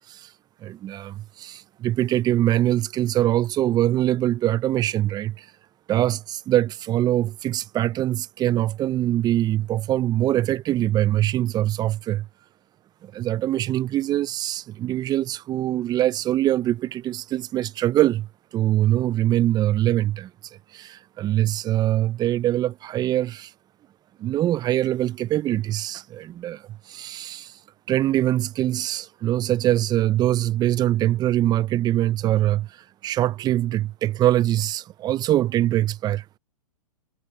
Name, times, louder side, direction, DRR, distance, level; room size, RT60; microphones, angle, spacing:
voice 1, 0.6-5.5 5.9-12.3 13.0-18.3 18.5-23.5 24.2-27.6 27.9-36.2, right 13 dB, 20° right, 0.5 m, -23 dB
hypercardioid pair, 125°, 19 cm